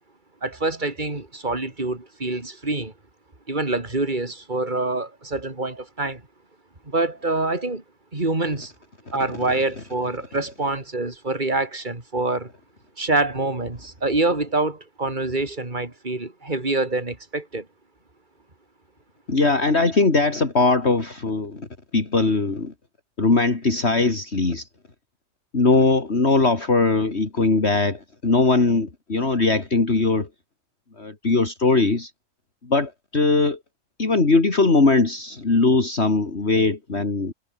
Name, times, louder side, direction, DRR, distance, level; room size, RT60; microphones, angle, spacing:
voice 1, 0.4-2.9 3.5-6.2 6.9-7.8 8.1-8.7 9.1-12.5 13.0-17.7, right 2 dB, 35° right, 3.9 m, -26 dB
voice 2, 19.3-21.7 21.9-22.7 23.2-24.7 25.5-30.3 31.0-32.1 32.6-33.6 34.0-37.3, left 3 dB, 50° left, 3.1 m, -20 dB
omnidirectional pair, 1.4 m